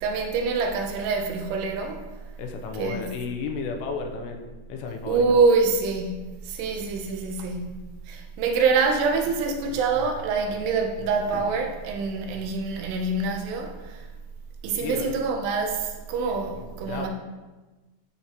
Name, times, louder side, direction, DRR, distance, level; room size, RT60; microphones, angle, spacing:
voice 1, 0.0-2.0 2.8-3.1 5.1-6.2 6.5-7.7 8.1-13.7 14.6-17.1, right 4 dB, 80° right, 2.8 m, -25 dB
voice 2, 2.4-4.4 4.7-5.3 14.8-15.1 16.5-17.1, left 5 dB, 85° left, 2.7 m, -33 dB
10.5 x 4.5 x 2.9 m
omnidirectional pair, 4.8 m